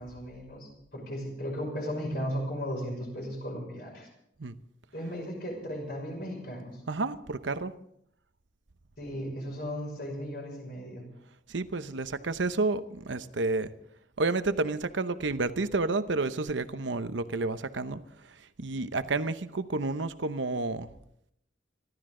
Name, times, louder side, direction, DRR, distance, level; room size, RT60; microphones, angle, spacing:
voice 1, 0.0-4.1 4.9-6.8 9.0-11.0, equal, 55° left, 1 dB, 5.8 m, -36 dB
voice 2, 6.9-7.7 11.5-13.7 14.2-20.9, right 3 dB, 75° right, 11 dB, 0.9 m, -30 dB
26.0 x 12.5 x 3.8 m, 0.74 s
head